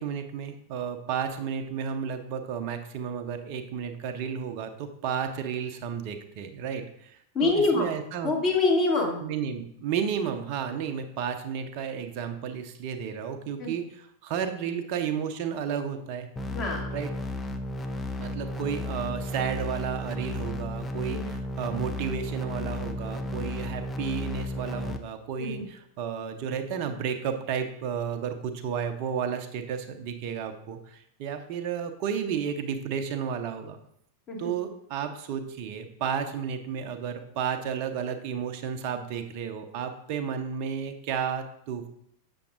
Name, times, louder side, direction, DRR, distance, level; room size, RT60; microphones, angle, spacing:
voice 1, 0.0-8.3 9.2-16.3 16.9-17.1 18.2-33.8 34.4-41.9, right 7 dB, 45° right, 7 dB, 0.7 m, -32 dB
voice 2, 7.3-7.9 8.2-9.2 13.6-13.7 16.5-16.8 21.1-21.3 25.4-25.7 34.3-34.5, left 3 dB, 30° left, -1 dB, 1.6 m, -25 dB
sound 1, 16.4-25.0, left 1 dB, 10° left, 0.6 m, -33 dB
7.0 x 6.8 x 2.5 m, 0.70 s
figure-of-eight pair, 90°, 0 cm